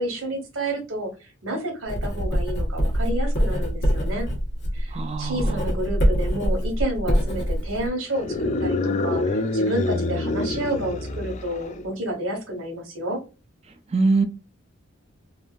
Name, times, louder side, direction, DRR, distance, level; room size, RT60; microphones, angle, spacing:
voice 1, 0.0-4.3 4.7-13.2, right 1 dB, 85° right, 1.2 m, -30 dB
Writing, 1.8-7.9, equal, 60° left, 1.2 m, -24 dB
voice 2, 4.9-5.4 13.9-14.2, right 3 dB, 30° right, 0.4 m, -21 dB
sound 1, 8.1-11.8, left 2 dB, 35° left, 0.3 m, -26 dB
3.4 x 2.5 x 2.4 m
head